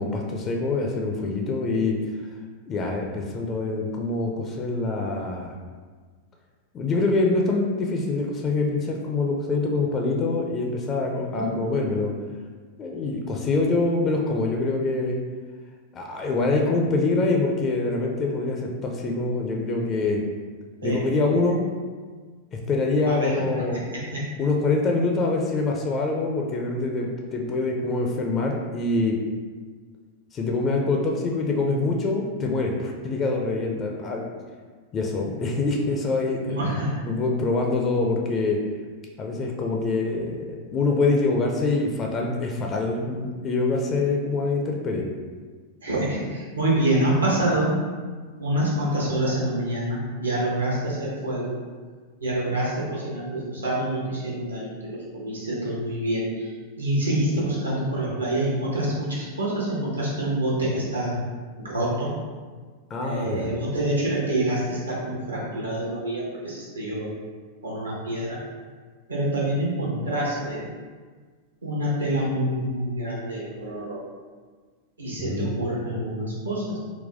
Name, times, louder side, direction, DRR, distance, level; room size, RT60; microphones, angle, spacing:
voice 1, 0.0-2.0 2.7-5.5 6.7-12.1 12.8-15.2 15.9-20.2 20.8-21.6 22.5-23.8 24.4-29.2 30.3-34.3 34.9-36.6 37.1-38.6 39.2-45.1 62.9-63.5 75.2-75.5, left 3 dB, 25° left, 1 dB, 0.4 m, -25 dB
voice 2, 23.1-24.3 36.6-37.0 45.8-47.8 48.4-51.6 52.2-56.5 56.8-61.2 61.6-62.1 63.0-67.1 67.6-68.4 69.1-70.7 71.6-74.0 75.0-76.8, right 1 dB, 75° right, -5 dB, 0.8 m, -26 dB
3.9 x 2.2 x 2.5 m, 1.5 s
figure-of-eight pair, 90°, 0 cm